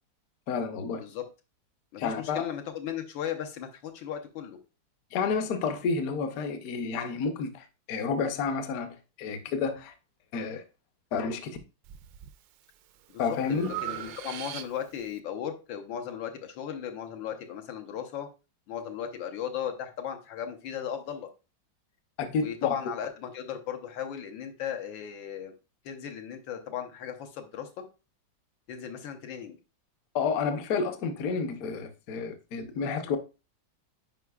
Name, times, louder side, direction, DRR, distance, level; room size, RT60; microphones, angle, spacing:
voice 1, 0.5-1.0 2.0-2.5 5.1-9.9 10.3-10.6 11.1-11.6 13.2-13.7 22.2-22.7 30.1-33.2, left 5 dB, 60° left, 1.0 m, -30 dB
voice 2, 1.9-4.6 13.1-18.3 18.7-21.3 22.4-25.5 25.8-27.7 28.7-29.6, left 9 dB, 85° left, 1.6 m, -36 dB
Breathing, 11.8-12.3 12.8-15.1, right 13 dB, 80° right, 1.2 m, -39 dB
9.5 x 4.7 x 2.3 m
omnidirectional pair, 2.0 m